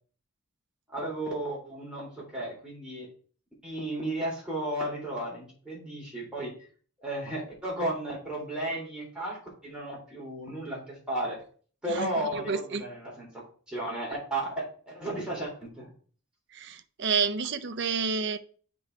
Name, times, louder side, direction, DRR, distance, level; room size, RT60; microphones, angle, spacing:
voice 1, 0.9-3.1 3.6-6.5 7.0-11.4 11.8-13.3 13.7-15.9, right 1 dB, 5° right, 3.5 m, -34 dB
voice 2, 11.9-12.8 16.5-18.4, right 5 dB, 55° right, 0.6 m, -30 dB
8.5 x 3.9 x 4.6 m
head